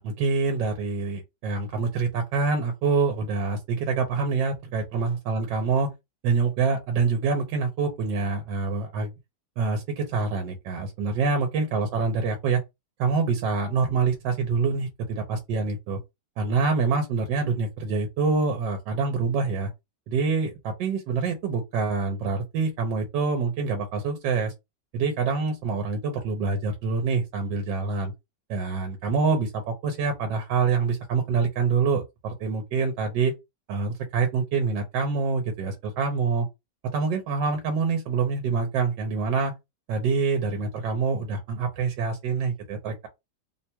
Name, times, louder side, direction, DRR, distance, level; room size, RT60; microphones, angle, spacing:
voice 1, 0.0-5.9 6.2-9.1 9.6-12.6 13.0-16.0 16.4-19.7 20.1-24.5 24.9-28.1 28.5-33.3 33.7-36.5 36.9-39.5 39.9-43.1, right 4 dB, 85° right, 1.4 m, -26 dB
3.2 x 2.2 x 4.3 m
omnidirectional pair, 1.9 m